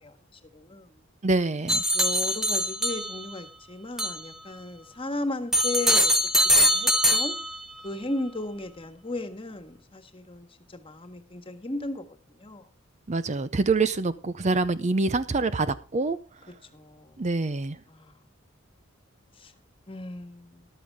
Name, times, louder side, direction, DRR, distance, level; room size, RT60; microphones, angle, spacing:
voice 1, 0.5-0.9 1.9-6.1 6.5-7.3 7.8-10.5 10.7-12.0 12.4-12.6 16.7-17.2 17.9-18.2 19.4-19.5 19.9-20.7, left 2 dB, 30° left, 8 dB, 1.6 m, -35 dB
voice 2, 1.2-1.8 13.1-16.2 17.2-17.8, right 3 dB, 35° right, 14 dB, 0.6 m, -25 dB
sound 1, 1.7-3.4 4.0-4.3 5.5-7.8, equal, ahead, 1.2 m, -23 dB
14.0 x 12.0 x 3.6 m, 0.34 s
head